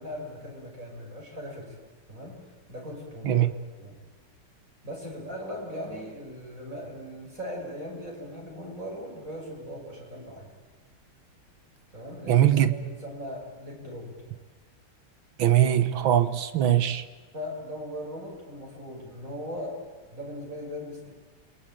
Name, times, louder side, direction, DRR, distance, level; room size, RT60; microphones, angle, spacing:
voice 1, 0.0-1.8 2.1-3.5 3.8-4.0 4.8-10.5 11.9-14.3 16.8-16.9 17.3-19.8 20.1-21.1, equal, 35° right, 6.7 m, -39 dB
voice 2, 12.3-12.7 15.4-17.0, right 11 dB, 65° right, 1.9 m, -21 dB
28.5 x 22.0 x 9.1 m
omnidirectional pair, 2.4 m